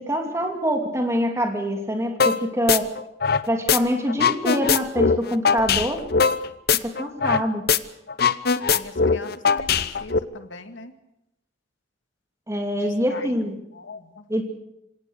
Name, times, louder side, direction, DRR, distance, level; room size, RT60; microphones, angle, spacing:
voice 1, 0.0-2.9 3.5-6.0 6.8-7.6 12.5-13.6 14.3-14.4, equal, 15° right, 3 dB, 2.8 m, -25 dB
sound 1, 2.2-2.4 2.7-3.8 4.1-7.4 7.7-7.8 8.1-10.2, left 5 dB, 55° left, 0.8 m, -20 dB
voice 2, 8.7-10.9 12.8-13.4 13.7-14.3, left 3 dB, 85° left, 8 dB, 2.0 m, -41 dB
26.5 x 17.5 x 6.6 m, 0.86 s
head